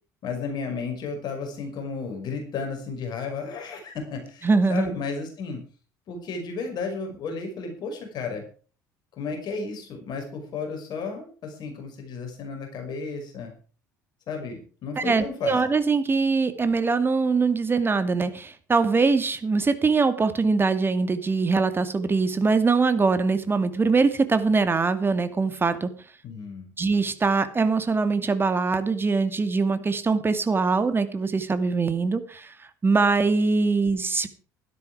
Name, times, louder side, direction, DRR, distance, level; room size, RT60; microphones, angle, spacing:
voice 1, 0.2-5.6 6.1-8.4 9.2-13.5 14.3-15.6 26.2-26.7, left 4 dB, 45° left, 4 dB, 5.5 m, -33 dB
voice 2, 4.4-4.9 15.0-25.9 26.8-32.5 32.8-34.3, right 4 dB, 25° right, 10 dB, 2.3 m, -22 dB
15.5 x 12.5 x 4.9 m, 0.40 s
figure-of-eight pair, 60°, 10 cm